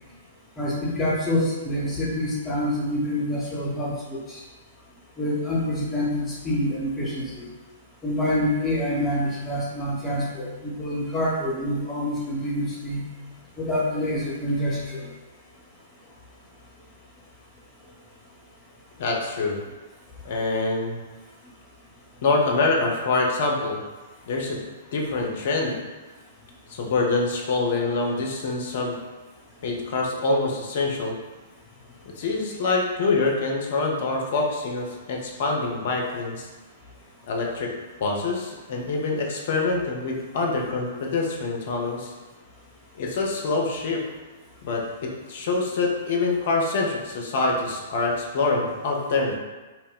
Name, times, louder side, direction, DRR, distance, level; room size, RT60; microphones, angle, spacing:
voice 1, 0.6-4.4 5.2-7.5 8.0-13.0 13.6-15.1, left 1 dB, 15° left, -5 dB, 0.7 m, -26 dB
voice 2, 19.0-19.6 20.2-21.0 22.2-23.8 24.3-24.6 24.9-25.8 26.7-29.0 29.6-31.1 32.2-36.5 37.3-37.7 38.0-42.1 43.0-44.0 44.6-49.3, left 3 dB, 50° left, 0 dB, 0.5 m, -25 dB
2.3 x 2.0 x 3.6 m, 1.2 s
figure-of-eight pair, 110°, 0 cm